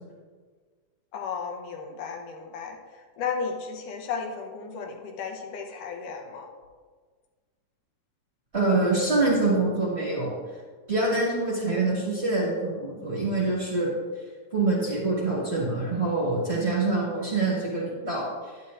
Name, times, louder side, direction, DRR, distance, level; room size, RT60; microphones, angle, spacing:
voice 1, 1.1-6.5, left 5 dB, 75° left, 3 dB, 2.4 m, -34 dB
voice 2, 8.5-10.3 10.9-13.9 14.5-18.6, right 2 dB, 25° right, -6 dB, 1.5 m, -25 dB
11.5 x 9.8 x 2.6 m, 1.5 s
omnidirectional pair, 4.0 m